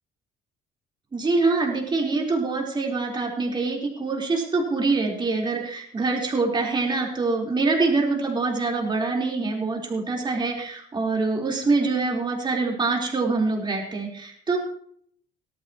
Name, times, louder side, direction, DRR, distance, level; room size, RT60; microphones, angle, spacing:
voice 1, 1.1-14.6, right 3 dB, 25° right, -1 dB, 4.4 m, -25 dB
18.0 x 13.5 x 3.1 m, 0.64 s
cardioid pair, 110°, 17 cm